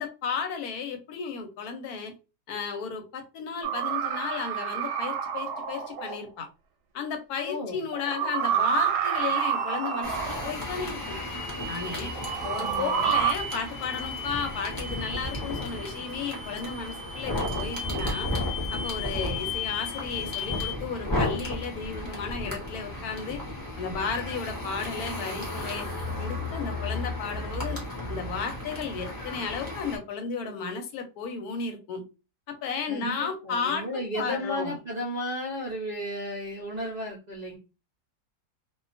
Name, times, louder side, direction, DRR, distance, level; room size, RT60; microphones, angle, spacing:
voice 1, 0.0-2.1 2.5-6.5 6.9-11.2 11.7-12.1 12.4-18.3 18.7-23.4 23.8-25.9 26.2-27.8 28.1-32.0 32.5-34.8, left 5 dB, 75° left, 5 dB, 1.1 m, -34 dB
sound 1, 3.6-6.2 7.9-10.6 12.1-13.3, right 8 dB, 85° right, 1.1 m, -28 dB
voice 2, 7.5-7.8 12.5-13.2 32.9-37.6, left 1 dB, 65° right, -2 dB, 0.4 m, -34 dB
sound 2, 9.0-20.7, left 4 dB, 40° left, 1.0 m, -38 dB
sound 3, 10.0-30.0, left 1 dB, 15° left, 0.8 m, -34 dB
2.5 x 2.2 x 2.5 m, 0.30 s
omnidirectional pair, 1.7 m